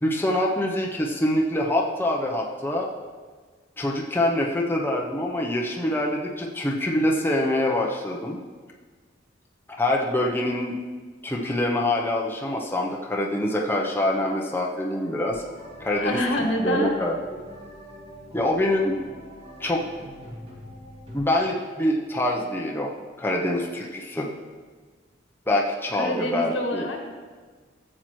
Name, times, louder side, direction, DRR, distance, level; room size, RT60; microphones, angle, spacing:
voice 1, 0.0-2.9 3.8-8.4 9.7-10.7 11.2-15.4 15.8-16.2 16.6-17.1 18.3-19.0 19.6-19.8 21.1-22.9 23.2-24.3 25.5-26.9, left 1 dB, 10° left, -2 dB, 0.8 m, -25 dB
sound 1, 15.3-21.2, equal, 30° right, 2.1 m, -44 dB
voice 2, 15.9-17.0 26.0-27.0, left 1 dB, 80° left, 2 dB, 1.5 m, -27 dB
14.5 x 7.5 x 3.2 m, 1.5 s
head